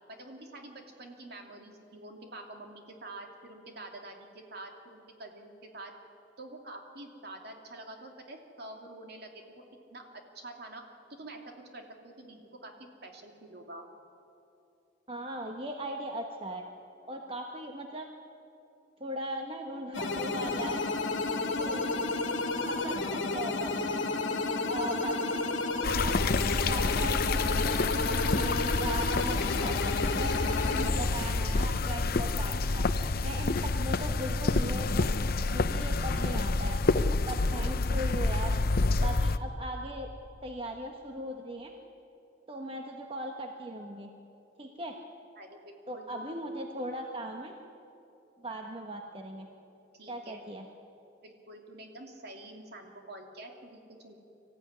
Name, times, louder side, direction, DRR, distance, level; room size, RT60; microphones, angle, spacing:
voice 1, 0.1-5.9 6.4-9.3 9.5-10.0 10.3-10.8 11.1-12.7 13.0-13.8 45.4-46.2 49.9-50.4 51.2-54.2, right 2 dB, 60° right, 2 dB, 2.8 m, -47 dB
voice 2, 15.1-16.6 17.1-18.1 19.0-20.8 21.6-21.9 22.6-24.0 24.7-25.5 25.9-26.2 26.6-27.7 28.1-32.9 33.2-35.1 35.5-36.8 37.3-38.5 39.0-40.1 40.4-41.7 42.5-44.1 44.6-44.9 45.9-47.5 48.4-49.5 50.1-50.7, right 1 dB, 30° right, 2 dB, 1.2 m, -39 dB
sound 1, 19.9-30.9, left 3 dB, 80° left, 1.8 m, -31 dB
sound 2, 25.8-39.4, left 3 dB, 55° left, 0.7 m, -28 dB
24.5 x 14.5 x 9.7 m, 2.8 s
head